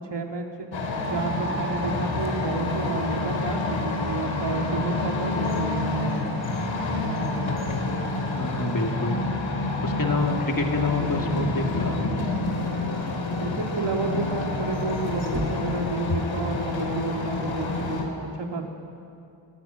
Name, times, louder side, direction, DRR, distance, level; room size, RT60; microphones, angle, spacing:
voice 1, 0.1-0.7 1.0-6.1 13.4-18.7, right 3 dB, 65° right, 2 dB, 2.7 m, -31 dB
sound 1, 0.7-18.0, left 2 dB, 85° left, 3.0 m, -28 dB
sound 2, 2.0-3.7 4.4-4.5 5.0-8.8 9.1-9.2 10.0-10.4 12.4-13.7 14.5-16.1 16.4-16.5, left 1 dB, 35° right, 3.6 m, -42 dB
voice 2, 8.3-9.2 9.8-12.0, left 3 dB, 45° left, 3 dB, 2.8 m, -27 dB
21.5 x 15.5 x 9.3 m, 2.5 s
cardioid pair, 55°, 44 cm